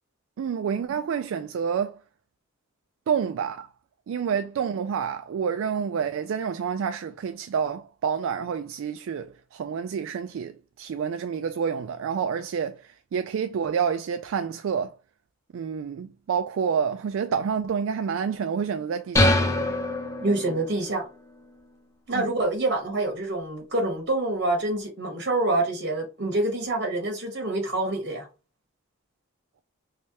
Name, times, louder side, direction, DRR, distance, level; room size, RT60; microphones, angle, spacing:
voice 1, 0.4-2.0 3.1-3.7 4.1-14.9 15.5-19.5 22.1-22.3, right 7 dB, 70° right, 0.3 m, -28 dB
sound 1, 19.2-20.8, left 2 dB, 15° left, 0.5 m, -23 dB
voice 2, 20.2-21.1 22.1-28.3, right 2 dB, 55° right, 1.4 m, -26 dB
3.3 x 3.2 x 2.8 m
head